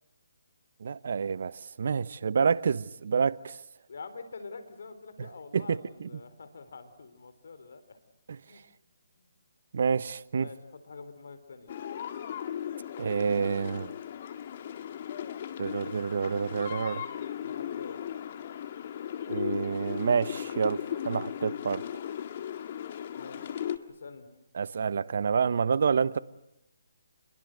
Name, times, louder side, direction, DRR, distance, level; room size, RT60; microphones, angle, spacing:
voice 1, 0.8-3.6 5.2-6.2 8.3-8.4 9.7-10.5 13.0-13.9 15.6-17.0 19.3-21.8 24.5-26.2, right 6 dB, 60° right, 1.0 m, -28 dB
voice 2, 3.9-8.0 8.5-8.6 9.2-9.3 10.3-11.7 17.4-18.0 23.2-23.6 24.0-24.3, left 4 dB, 70° left, 4.2 m, -46 dB
sound 1, 11.7-23.8, left 9 dB, 45° left, 1.8 m, -37 dB
28.5 x 22.5 x 7.9 m
hypercardioid pair, 150°, 0 cm